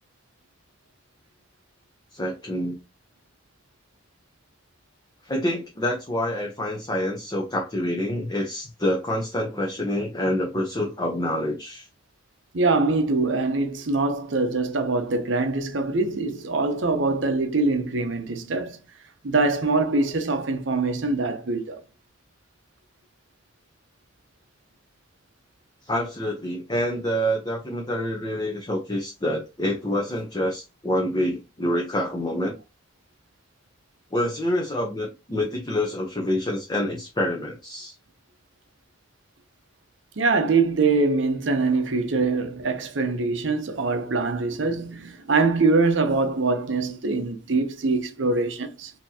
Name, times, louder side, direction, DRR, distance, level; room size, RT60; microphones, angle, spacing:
voice 1, 2.1-2.8 5.2-11.9 25.8-32.5 34.1-37.9, left 1 dB, 20° left, 0.8 m, -27 dB
voice 2, 12.5-18.8 19.2-21.8 40.2-48.9, right 3 dB, 70° right, 0.7 m, -23 dB
4.3 x 2.9 x 2.8 m
head